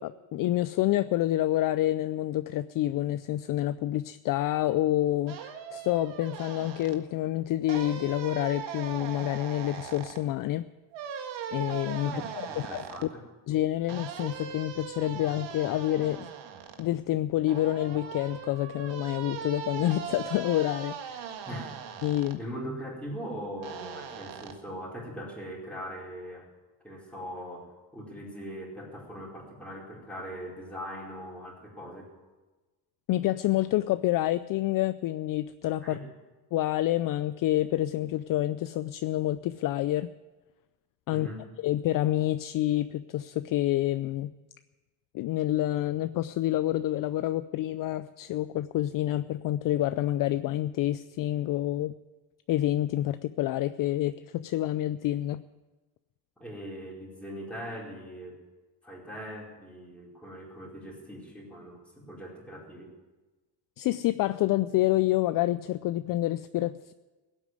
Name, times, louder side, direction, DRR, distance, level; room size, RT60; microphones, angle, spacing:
voice 1, 0.0-10.7 11.5-12.1 12.7-12.8 13.5-16.3 16.8-21.4 22.0-22.4 33.1-36.0 36.5-40.1 41.1-41.3 41.6-44.3 45.1-51.9 52.5-55.4 63.8-66.9, left 14 dB, 50° left, 13 dB, 0.5 m, -28 dB
sound 1, 5.3-7.0 7.7-10.2 10.9-13.1 13.9-16.8 17.5-22.4 23.6-24.5, right 8 dB, 80° right, 1.8 m, -40 dB
voice 2, 12.0-13.3 21.4-21.7 22.4-26.5 26.8-32.1 35.8-36.1 41.1-41.4 56.4-58.4 58.8-62.9, equal, 5° left, -4 dB, 4.6 m, -41 dB
16.5 x 8.6 x 9.4 m, 1.2 s
cardioid pair, 130°, 44 cm